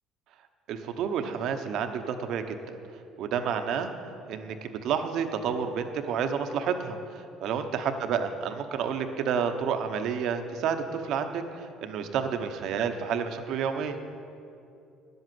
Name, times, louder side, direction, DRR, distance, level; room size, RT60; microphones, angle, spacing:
voice 1, 0.7-2.8 3.2-3.9 4.3-14.0, right 7 dB, 60° right, 7 dB, 0.9 m, -30 dB
10.5 x 8.0 x 7.7 m, 2.6 s
cardioid pair, 125°, 0 cm